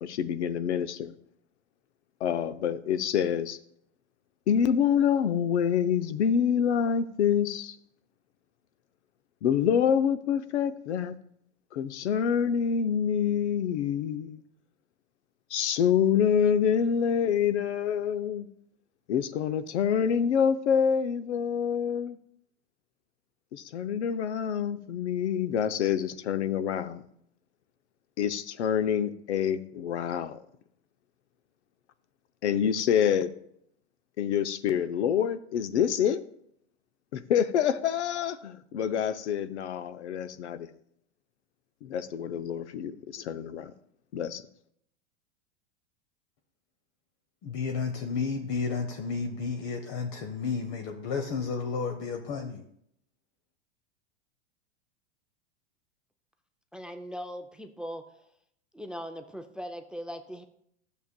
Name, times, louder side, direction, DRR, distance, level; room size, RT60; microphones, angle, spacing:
voice 1, 0.0-1.1 2.2-3.6 4.5-7.8 9.4-11.2 11.7-14.4 15.5-18.5 19.1-22.2 23.5-27.0 28.2-30.4 32.4-33.3 34.2-36.2 37.1-40.7 41.8-43.7 44.1-44.4, left 8 dB, 85° left, 0.7 m, -26 dB
voice 2, 47.4-52.6, left 5 dB, 45° left, 0.9 m, -32 dB
voice 3, 56.7-58.3 58.7-60.5, equal, 5° right, 0.3 m, -40 dB
12.5 x 7.0 x 2.2 m
hypercardioid pair, 110°, 34 cm